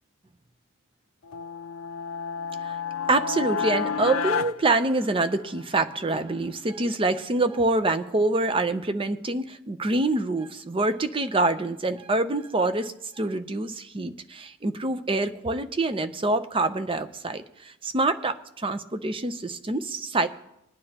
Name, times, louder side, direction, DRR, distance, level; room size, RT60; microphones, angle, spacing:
sound 1, 1.2-5.6, left 6 dB, 75° left, 0.4 m, -31 dB
voice 1, 3.1-20.3, right 2 dB, 25° right, 10 dB, 0.6 m, -26 dB
21.5 x 9.8 x 2.9 m, 0.83 s
head